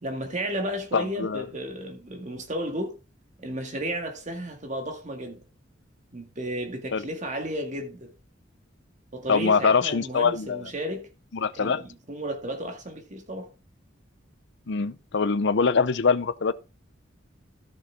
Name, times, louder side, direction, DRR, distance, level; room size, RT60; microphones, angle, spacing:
voice 1, 0.0-2.9 3.4-5.4 6.1-8.1 9.1-11.1 11.5-13.5, right 1 dB, 40° right, 2.0 m, -33 dB
voice 2, 0.9-1.4 6.9-7.1 9.3-10.7 11.3-11.8 14.7-16.5, left 5 dB, 65° left, 0.6 m, -23 dB
13.5 x 6.4 x 3.5 m
head